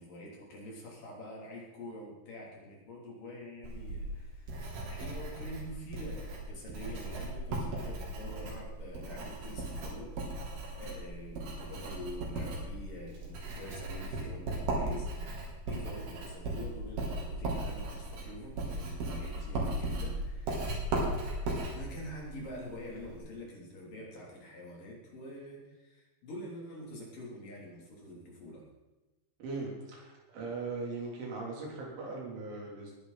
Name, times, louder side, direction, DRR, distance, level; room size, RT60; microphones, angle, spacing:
voice 1, 0.0-10.2 10.8-20.7 21.7-28.6, left 1 dB, 50° left, -3 dB, 4.6 m, -46 dB
Writing, 3.6-23.2, right 2 dB, 60° right, 4.7 m, -37 dB
voice 2, 29.4-33.0, right 3 dB, 80° right, -2 dB, 6.0 m, -39 dB
20.5 x 10.5 x 4.2 m, 1.1 s
omnidirectional pair, 5.3 m